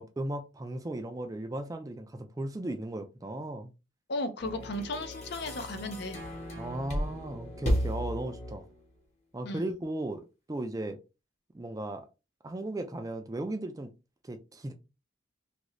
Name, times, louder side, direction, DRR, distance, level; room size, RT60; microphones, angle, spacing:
voice 1, 0.0-3.7 6.6-8.6 9.3-11.0 11.5-12.1 12.4-13.9 14.2-14.7, right 1 dB, 20° right, 0.3 m, -36 dB
voice 2, 4.1-6.2 9.4-9.7, left 2 dB, 55° left, 0.5 m, -35 dB
sound 1, 4.4-8.8, equal, 35° left, 1.1 m, -34 dB
2.7 x 2.5 x 3.1 m
head